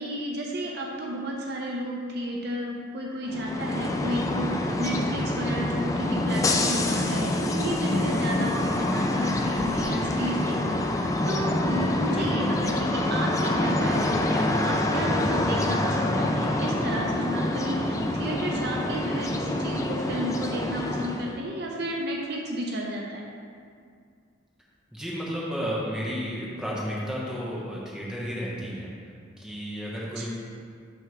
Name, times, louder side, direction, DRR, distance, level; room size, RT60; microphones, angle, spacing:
voice 1, 0.0-23.2 30.2-30.3, right 1 dB, 55° right, -1 dB, 0.7 m, -32 dB
sound 1, 3.3-21.4, left 1 dB, 15° left, 0.3 m, -26 dB
voice 2, 24.9-28.9 29.4-30.3, equal, 5° right, -6 dB, 1.2 m, -32 dB
6.3 x 3.4 x 6.0 m, 2.2 s
head